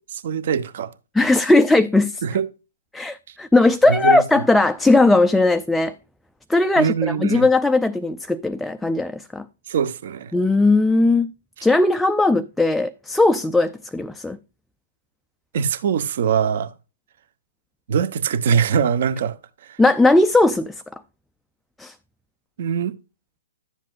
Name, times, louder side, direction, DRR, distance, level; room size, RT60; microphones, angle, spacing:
voice 1, 0.2-0.9 2.2-2.5 3.9-4.2 6.8-7.5 9.7-10.3 15.5-16.7 17.9-19.3 22.6-22.9, right 7 dB, 55° right, 0.9 m, -22 dB
voice 2, 1.1-2.2 2.9-6.0 6.5-9.4 10.3-11.3 11.6-14.4 19.8-20.7 21.8-21.9, left 2 dB, 5° left, 0.3 m, -18 dB
11.5 x 7.5 x 2.4 m
hypercardioid pair, 130°, 0 cm